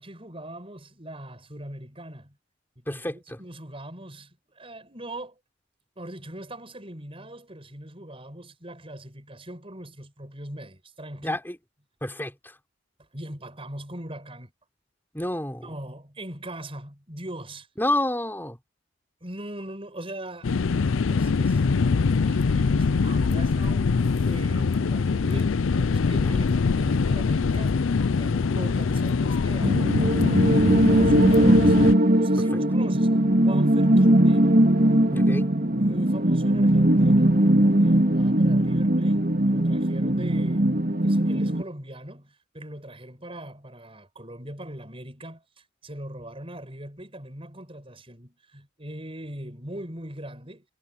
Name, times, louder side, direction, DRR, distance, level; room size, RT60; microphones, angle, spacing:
voice 1, 0.0-2.4 2.8-5.4 6.0-11.4 13.1-14.5 15.6-17.7 19.2-20.5 21.1-21.6 22.2-23.9 24.2-27.8 28.1-31.8 32.1-34.6 35.8-37.5 37.8-40.7 41.0-50.6, right 1 dB, 30° right, 7.4 m, -40 dB
voice 2, 2.9-3.4 11.2-11.5 12.0-12.5 15.1-15.6 17.8-18.6 26.1-26.3 35.1-35.5, left 1 dB, 10° left, 5.9 m, -29 dB
sound 1, 20.4-31.9, left 4 dB, 85° left, 0.5 m, -23 dB
sound 2, 29.6-41.6, right 1 dB, 50° right, 2.8 m, -20 dB
head